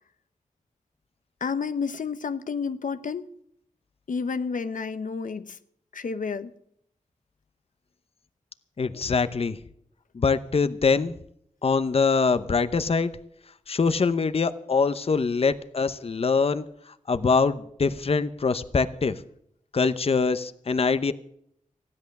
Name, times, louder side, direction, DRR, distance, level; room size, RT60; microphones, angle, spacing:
voice 1, 1.4-3.3 4.1-5.6 5.9-6.5, left 5 dB, 85° left, 11 dB, 0.8 m, -30 dB
voice 2, 8.8-9.6 10.1-11.2 11.6-13.1 13.7-16.6 17.1-19.2 19.7-21.1, left 4 dB, 50° left, 11 dB, 0.8 m, -23 dB
15.5 x 10.5 x 6.5 m, 0.69 s
wide cardioid pair, 115°, 13 cm